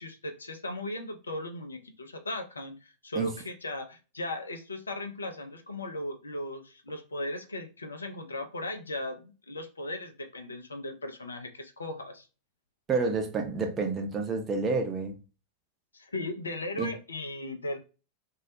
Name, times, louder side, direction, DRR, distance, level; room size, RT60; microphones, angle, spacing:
voice 1, 0.0-12.3 15.9-17.8, left 1 dB, 75° left, 0.5 m, -37 dB
voice 2, 12.9-15.2 16.8-16.9, right 4 dB, 25° right, 0.6 m, -29 dB
2.3 x 2.0 x 2.7 m
figure-of-eight pair, 90°, 0 cm